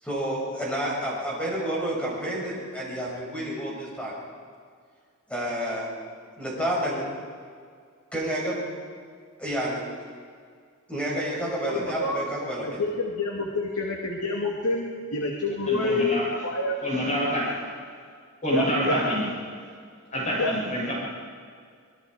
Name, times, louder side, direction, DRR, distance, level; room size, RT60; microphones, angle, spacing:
voice 1, 0.0-4.1 5.3-5.9 6.4-7.1 8.1-8.8 9.4-9.8 10.9-12.8, right 1 dB, 5° left, -5 dB, 6.9 m, -29 dB
voice 2, 11.6-12.2 12.6-16.8 18.5-19.0 20.4-20.6, left 2 dB, 80° left, 0 dB, 2.3 m, -28 dB
voice 3, 15.7-16.2 16.8-17.6 18.4-19.3 20.1-20.9, equal, 35° left, -5 dB, 7.9 m, -27 dB
26.0 x 21.5 x 5.0 m, 2.1 s
head